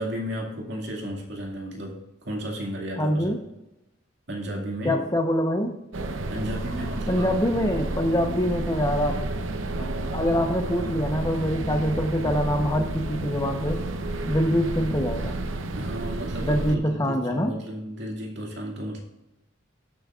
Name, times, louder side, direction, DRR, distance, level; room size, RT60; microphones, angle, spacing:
voice 1, 0.0-3.4 4.3-5.1 6.3-7.3 8.4-8.5 15.8-19.0, equal, 60° right, 0 dB, 2.2 m, -33 dB
voice 2, 3.0-3.4 4.8-5.8 7.1-9.3 9.8-13.8 14.3-15.4 16.4-17.6, equal, 20° left, 5 dB, 0.9 m, -25 dB
sound 1, 5.9-16.8, right 2 dB, 75° right, 0.8 m, -31 dB
18.0 x 7.5 x 2.5 m, 0.93 s
head